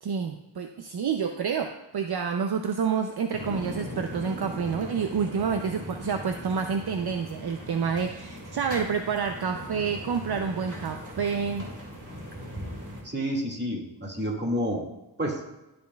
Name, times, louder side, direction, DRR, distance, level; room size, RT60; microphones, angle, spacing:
voice 1, 0.0-11.7, right 6 dB, 60° right, 5 dB, 0.6 m, -28 dB
sound 1, 3.3-13.0, equal, 40° right, 2.3 m, -39 dB
voice 2, 13.0-14.9 15.2-15.4, equal, 25° right, -2 dB, 2.1 m, -29 dB
12.5 x 5.2 x 2.3 m, 0.98 s
cardioid pair, 40°, 44 cm